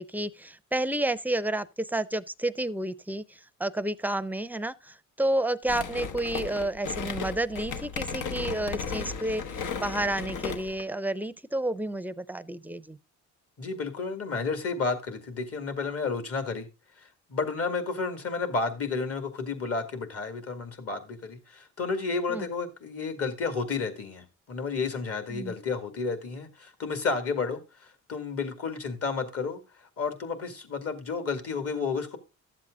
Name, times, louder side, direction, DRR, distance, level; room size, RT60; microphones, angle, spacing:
voice 1, 0.0-13.0 22.3-22.5 25.3-25.5, right 1 dB, 5° right, 0.5 m, -30 dB
sound 1, 5.7-10.8, left 6 dB, 85° left, 1.1 m, -35 dB
voice 2, 13.6-16.7 17.0-29.6 30.0-32.2, left 4 dB, 50° left, 2.2 m, -31 dB
12.5 x 7.5 x 3.7 m
cardioid pair, 90°, 30 cm